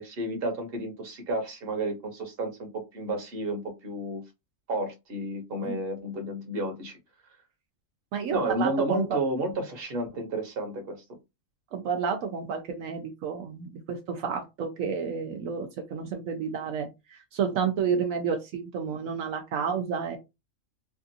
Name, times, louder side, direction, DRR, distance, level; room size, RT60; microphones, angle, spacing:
voice 1, 0.0-4.2 4.7-7.0 8.3-11.0, right 1 dB, 50° right, 3 dB, 1.2 m, -31 dB
voice 2, 8.1-9.2 11.7-20.2, right 6 dB, 80° right, 4 dB, 1.0 m, -30 dB
3.4 x 2.4 x 2.6 m, 0.23 s
omnidirectional pair, 1.4 m